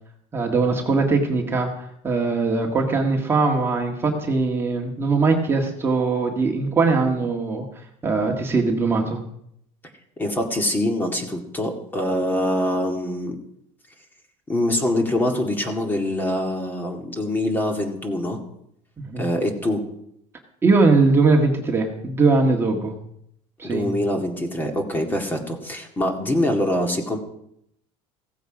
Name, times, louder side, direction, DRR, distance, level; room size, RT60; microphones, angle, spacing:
voice 1, 0.3-7.6 8.0-9.2 19.0-19.3 20.6-22.9 23.6-23.9, right 3 dB, 15° right, 1 dB, 1.6 m, -21 dB
voice 2, 10.2-13.4 14.5-18.4 19.2-19.8 23.6-27.2, left 1 dB, 15° left, 3 dB, 2.0 m, -24 dB
16.0 x 14.5 x 5.0 m, 0.74 s
cardioid pair, 160°, 14 cm